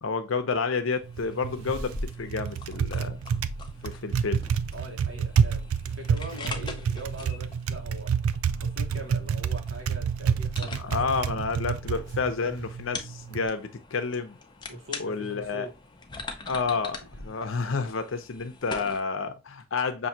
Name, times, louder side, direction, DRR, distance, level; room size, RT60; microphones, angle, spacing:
voice 1, 0.0-1.9 2.2-3.2 3.8-4.4 10.7-14.4 15.0-15.7 16.5-17.0 17.2-20.1, left 4 dB, 65° left, 0.6 m, -30 dB
sound 1, 0.9-19.0, left 3 dB, 20° left, 0.5 m, -43 dB
Typing, 1.0-13.5, right 6 dB, 85° right, 0.4 m, -29 dB
voice 2, 4.7-5.7 6.0-8.1 8.6-11.1 14.7-15.7 17.2-17.3, right 1 dB, 70° right, 1.3 m, -41 dB
6.1 x 2.6 x 2.7 m
head